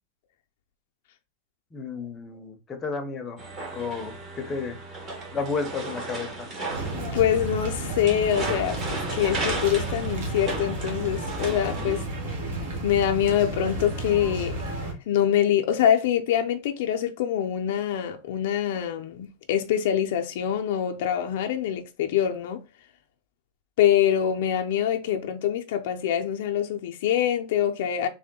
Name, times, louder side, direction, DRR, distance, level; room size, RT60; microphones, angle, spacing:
voice 1, 1.7-3.4 3.7-4.8 5.3-6.5, left 4 dB, 20° left, 0.7 m, -32 dB
sound 1, 3.4-12.0, right 3 dB, 25° right, 1.1 m, -35 dB
sound 2, 6.7-14.9, right 2 dB, 65° right, 1.4 m, -32 dB
voice 2, 6.9-12.0 12.8-22.6 23.8-28.1, left 10 dB, 65° left, 0.4 m, -25 dB
3.6 x 2.1 x 3.7 m
supercardioid pair, 150°, 0 cm